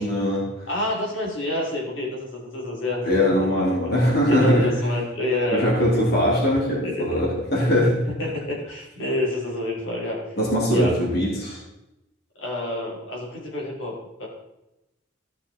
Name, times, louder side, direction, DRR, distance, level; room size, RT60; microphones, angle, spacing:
voice 1, 0.0-0.7 3.0-4.7 5.5-8.1 10.4-11.6, equal, 55° left, -5 dB, 3.5 m, -21 dB
voice 2, 0.7-3.1 3.4-3.6 4.3-5.7 6.8-7.2 8.2-10.4 10.7-11.0 12.4-14.3, left 1 dB, 70° left, -2 dB, 3.3 m, -28 dB
14.0 x 5.9 x 4.2 m, 0.93 s
head